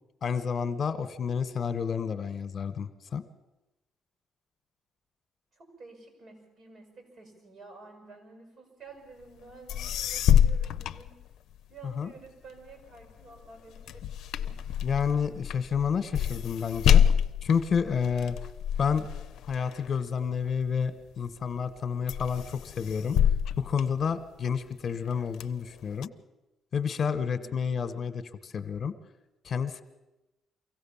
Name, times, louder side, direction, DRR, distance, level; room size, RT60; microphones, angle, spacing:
voice 1, 0.2-3.2 11.9-12.1 14.8-17.0 17.4-18.4 18.8-19.1 19.5-23.2 23.6-26.1 26.7-28.9 29.4-29.8, left 6 dB, 50° left, 11 dB, 1.4 m, -30 dB
voice 2, 5.5-11.2 11.7-14.6 27.2-27.6, right 3 dB, 60° right, 5 dB, 6.9 m, -51 dB
sound 1, 9.4-9.5 9.7-11.8 12.2-20.9 21.4-21.8 22.1-24.6 25.0-26.1, left 9 dB, 80° left, 0.6 m, -27 dB
24.0 x 16.0 x 7.3 m, 0.98 s
cardioid pair, 90°, 0 cm